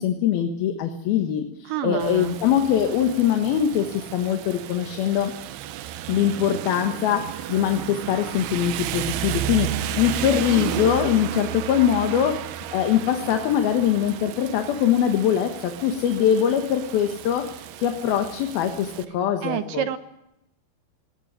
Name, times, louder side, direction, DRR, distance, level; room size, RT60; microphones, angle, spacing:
voice 1, 0.0-5.3 6.1-12.5 12.7-19.9, left 9 dB, 75° left, 5 dB, 3.2 m, -22 dB
voice 2, 1.7-2.3 19.4-20.0, right 11 dB, 70° right, 10 dB, 2.3 m, -27 dB
Rain, 2.0-19.0, right 11 dB, 85° right, 3.0 m, -33 dB
19.0 x 18.0 x 10.0 m, 0.86 s
omnidirectional pair, 4.6 m